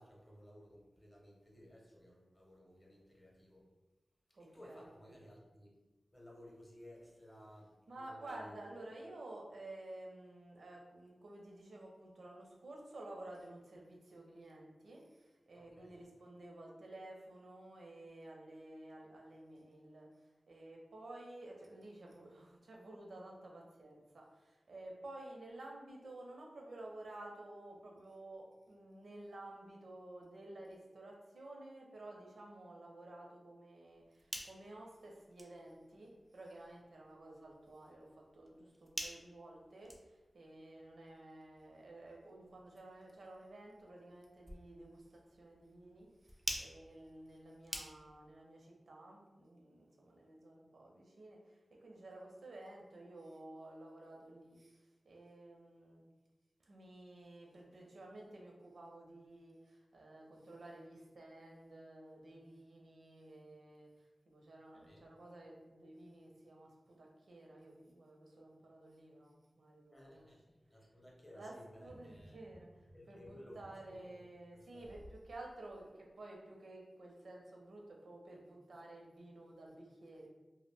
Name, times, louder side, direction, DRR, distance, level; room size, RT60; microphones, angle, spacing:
voice 1, 0.0-3.7 4.4-5.7 6.1-8.8 15.5-16.0 64.7-65.1 69.9-72.4 72.9-73.6 73.9-74.2 74.5-74.9, equal, 20° left, -3 dB, 0.7 m, -57 dB
voice 2, 4.3-5.1 7.9-56.0 56.6-70.3 71.3-80.3, right 1 dB, 75° right, -1 dB, 0.5 m, -53 dB
sound 1, 33.9-48.3, equal, 5° right, 0.4 m, -50 dB
sound 2, 71.8-75.2 75.7-75.8, equal, 75° left, 0.6 m, -60 dB
2.2 x 2.0 x 3.3 m, 1.1 s
wide cardioid pair, 95°, 0 cm